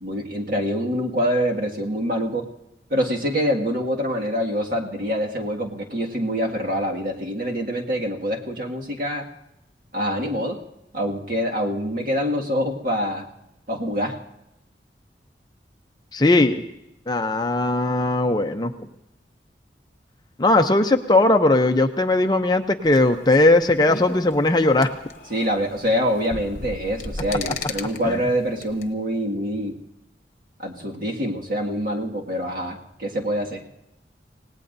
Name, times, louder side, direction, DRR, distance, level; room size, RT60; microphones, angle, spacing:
voice 1, 0.0-2.5 2.9-9.3 9.9-10.6 10.9-13.3 13.7-14.2 25.3-29.8 30.6-33.6, equal, 50° right, -1 dB, 2.0 m, -25 dB
voice 2, 16.1-16.6 17.1-18.7 20.4-24.9 28.1-28.2, left 2 dB, 25° left, 6 dB, 0.6 m, -18 dB
sound 1, 22.8-28.9, left 3 dB, 40° left, 1.1 m, -36 dB
27.0 x 18.5 x 2.7 m, 0.86 s
head